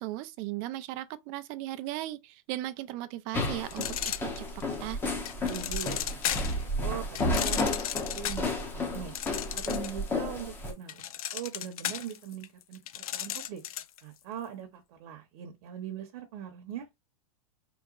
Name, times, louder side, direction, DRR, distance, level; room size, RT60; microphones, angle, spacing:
voice 1, 0.0-4.5 4.8-5.0, right 15 dB, 30° right, 0.4 m, -37 dB
sound 1, 3.3-10.7, left 2 dB, 10° left, 0.7 m, -32 dB
sound 2, 3.7-4.7 5.3-6.6 7.1-10.1 10.4-14.0, left 11 dB, 75° left, 0.6 m, -35 dB
voice 2, 5.5-7.6 7.9-9.1 9.5-11.0 11.3-13.6 14.0-16.9, right 9 dB, 45° right, 0.8 m, -41 dB
4.3 x 2.9 x 2.4 m
supercardioid pair, 155°, 19 cm